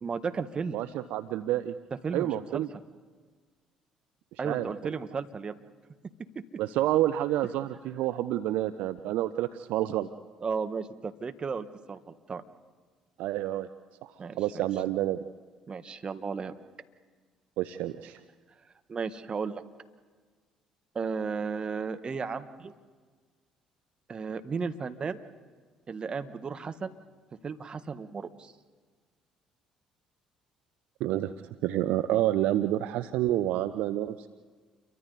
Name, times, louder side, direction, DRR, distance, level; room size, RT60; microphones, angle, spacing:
voice 1, 0.0-0.8 2.0-2.6 4.4-5.5 10.4-12.4 14.2-14.4 15.7-16.5 18.9-19.6 20.9-22.7 24.1-25.2 25.9-26.9 27.4-28.5, right 5 dB, 40° right, 9 dB, 1.5 m, -34 dB
voice 2, 0.7-1.7 2.1-2.7 4.4-4.9 6.6-10.1 13.2-13.7 14.0-15.2 17.6-18.2 31.0-31.3 31.6-34.3, right 13 dB, 70° right, 12 dB, 0.7 m, -29 dB
29.5 x 24.0 x 4.1 m, 1.5 s
hypercardioid pair, 55°, 3 cm